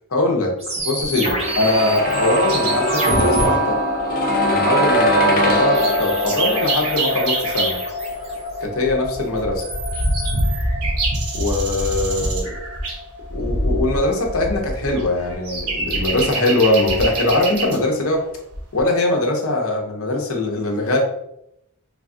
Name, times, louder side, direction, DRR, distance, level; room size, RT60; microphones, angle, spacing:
voice 1, 0.1-0.5 0.8-3.8 4.5-7.8 8.6-9.6 11.3-12.6 13.3-18.2 18.7-21.0, left 2 dB, 70° left, 1 dB, 0.8 m, -21 dB
sound 1, 0.6-3.4 5.7-8.6 9.4-10.6, right 1 dB, 30° right, 1.0 m, -28 dB
sound 2, 1.4-13.2 13.5-13.6, equal, 40° left, 0.4 m, -22 dB
sound 3, 1.4-2.9 3.1-3.2 4.0-4.1 4.2-4.6 5.0-5.1 5.4-7.8 8.5-17.8 18.5-18.8, right 2 dB, 90° right, 1.0 m, -25 dB
3.4 x 2.3 x 3.7 m, 0.78 s
head